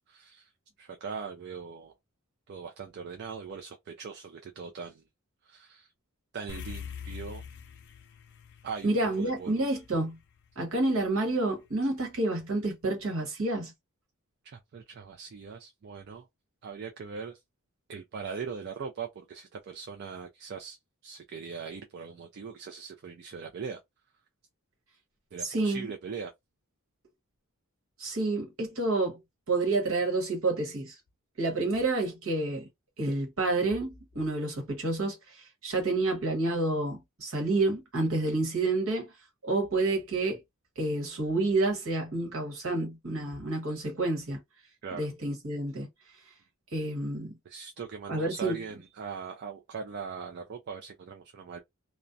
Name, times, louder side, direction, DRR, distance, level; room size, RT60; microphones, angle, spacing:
voice 1, 0.1-0.5 0.8-1.9 2.5-5.0 5.4-5.9 6.3-7.4 8.6-9.7 14.4-16.3 16.6-17.4 17.9-23.8 25.3-26.3 44.8-45.1 47.5-51.6, right 5 dB, 50° right, 0.3 m, -40 dB
sound 1, 6.5-11.0, left 7 dB, 50° left, 0.3 m, -44 dB
voice 2, 8.8-10.2 10.6-13.7 25.4-25.9 28.0-29.2 29.5-30.9 31.4-32.7 33.0-39.1 39.4-40.4 40.8-44.4 44.9-45.9 46.7-47.3 48.1-48.6, right 2 dB, 65° right, 1.1 m, -29 dB
2.4 x 2.0 x 2.5 m
head